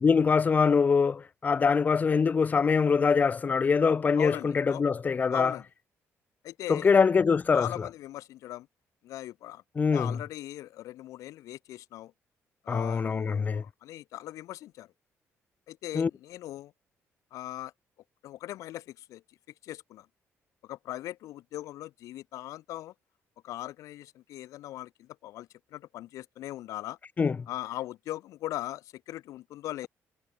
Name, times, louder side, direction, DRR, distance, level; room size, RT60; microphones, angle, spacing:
voice 1, 0.0-5.5 6.7-7.7 9.8-10.1 12.7-13.6 15.9-16.1 27.2-27.3, left 5 dB, 30° left, 1.4 m, -23 dB
voice 2, 4.1-4.8 5.3-5.7 6.4-6.9 7.5-8.7 9.0-9.6 9.9-12.1 12.6-14.9 15.7-16.7 17.3-17.7 18.2-19.2 19.6-20.1 20.6-22.9 23.4-27.0 27.5-29.9, left 14 dB, 90° left, 4.0 m, -39 dB
cardioid pair, 130°, 5 cm